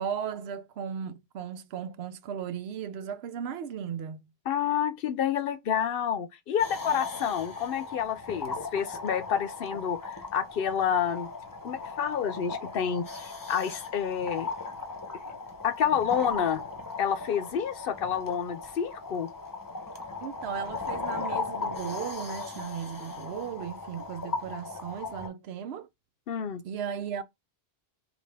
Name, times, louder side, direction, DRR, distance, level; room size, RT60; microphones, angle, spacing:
voice 1, 0.0-4.2 20.2-25.9 26.6-27.2, right 8 dB, 85° right, 0.9 m, -36 dB
voice 2, 4.5-11.3 11.6-14.5 15.6-16.6 17.0-19.3 26.3-26.6, left 8 dB, 65° left, 0.8 m, -29 dB
sound 1, 6.6-25.3, left 4 dB, 20° left, 0.7 m, -37 dB
5.2 x 2.5 x 3.3 m
omnidirectional pair, 1.0 m